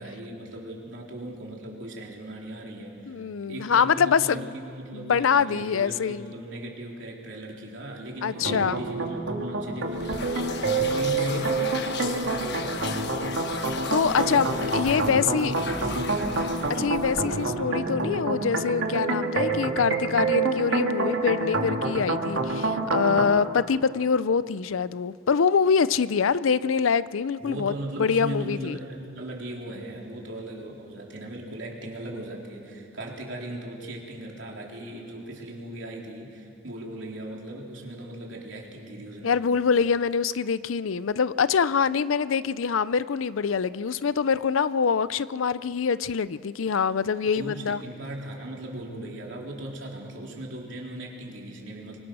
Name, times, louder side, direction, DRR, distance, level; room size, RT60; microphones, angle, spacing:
voice 1, 0.0-3.2 3.5-13.1 14.1-16.7 17.3-17.9 27.4-39.4 47.2-52.0, right 1 dB, 60° right, -2 dB, 3.9 m, -38 dB
voice 2, 3.1-4.5 4.9-6.3 8.2-8.8 13.6-14.5 14.7-15.5 16.8-27.7 28.0-28.8 39.2-47.8, left 6 dB, 75° left, 17 dB, 0.5 m, -24 dB
sound 1, 8.3-23.2, right 3 dB, 80° right, 2.4 m, -27 dB
sound 2, 9.9-17.5, left 4 dB, 55° left, 1.2 m, -35 dB
26.5 x 23.5 x 6.3 m, 2.6 s
head